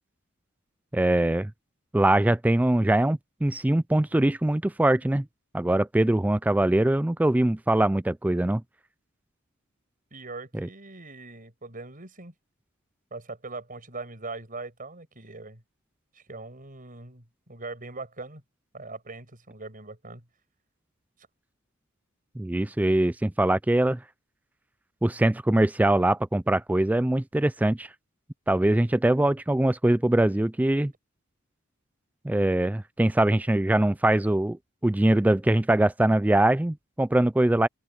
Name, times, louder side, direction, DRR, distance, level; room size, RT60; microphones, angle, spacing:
voice 1, 0.9-1.5 1.9-5.3 5.5-8.6 10.5-10.7 22.4-24.0 25.0-27.9 28.5-30.9 32.2-37.7, right 1 dB, 10° right, 0.3 m, -22 dB
voice 2, 10.1-12.3 13.1-15.6 16.1-18.4 18.7-20.2, right 3 dB, 45° right, 6.5 m, -41 dB
open air
head